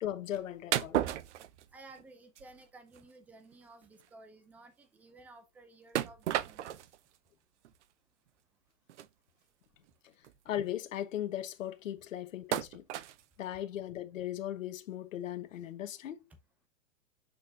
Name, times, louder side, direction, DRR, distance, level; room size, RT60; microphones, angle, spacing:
voice 1, 0.0-1.0 10.4-12.8 13.4-16.2, left 11 dB, 70° left, 1.3 m, -38 dB
sound 1, 0.7-2.0 2.4-2.6 2.9-3.0 3.5-3.6 3.8-4.0 5.9-7.0 7.6-7.7 8.9-9.1 9.9-10.0 10.2-10.5 12.5-13.2, right 12 dB, 60° right, 0.7 m, -33 dB
voice 2, 1.7-6.7 16.3-16.4, right 2 dB, 5° right, 0.5 m, -55 dB
6.5 x 5.8 x 2.8 m
hypercardioid pair, 145°, 40 cm